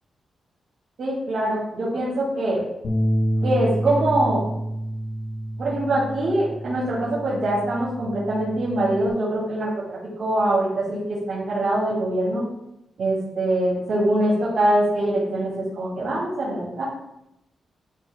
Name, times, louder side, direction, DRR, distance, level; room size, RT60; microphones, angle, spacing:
voice 1, 1.0-2.6 3.4-4.4 5.6-12.4 13.0-16.8, right 1 dB, 70° right, -7 dB, 2.8 m, -23 dB
Bass guitar, 2.8-9.1, equal, 65° left, 1.2 m, -28 dB
12.0 x 4.9 x 2.3 m, 0.85 s
cardioid pair, 85°, 0 cm